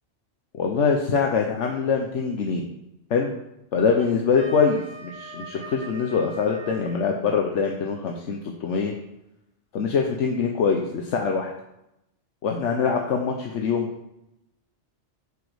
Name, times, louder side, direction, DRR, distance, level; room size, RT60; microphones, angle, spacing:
voice 1, 0.5-2.7 3.1-3.3 3.7-8.9 9.7-11.5 12.4-13.9, left 5 dB, 75° left, 2 dB, 1.2 m, -24 dB
Wind instrument woodwind instrument, 3.9-7.0, right 2 dB, 85° right, 2.1 m, -41 dB
8.1 x 5.1 x 6.2 m, 0.86 s
omnidirectional pair, 1.2 m